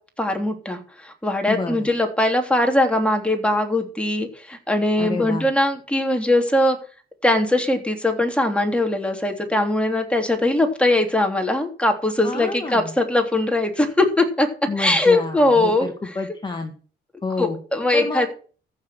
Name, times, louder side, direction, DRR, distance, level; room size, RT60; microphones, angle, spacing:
voice 1, 0.2-6.8 7.2-14.5 14.8-15.9 17.4-18.3, left 1 dB, 5° left, 3 dB, 3.3 m, -21 dB
voice 2, 1.5-1.9 5.0-5.5 12.2-12.9 14.7-16.7 17.2-17.6 17.9-18.3, left 3 dB, 25° left, 4 dB, 2.0 m, -29 dB
14.5 x 6.6 x 6.3 m, 0.39 s
cardioid pair, 90°, 20 cm